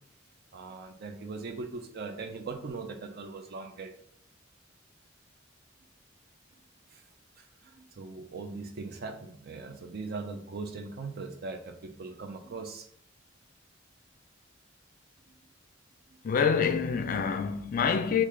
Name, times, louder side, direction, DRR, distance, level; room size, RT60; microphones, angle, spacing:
voice 1, 0.5-3.9 6.9-7.0 7.4-7.5 7.7-12.9, right 4 dB, 55° right, 0.5 m, -40 dB
voice 2, 16.2-18.2, left 6 dB, 45° left, 0.3 m, -26 dB
3.7 x 2.5 x 3.1 m
head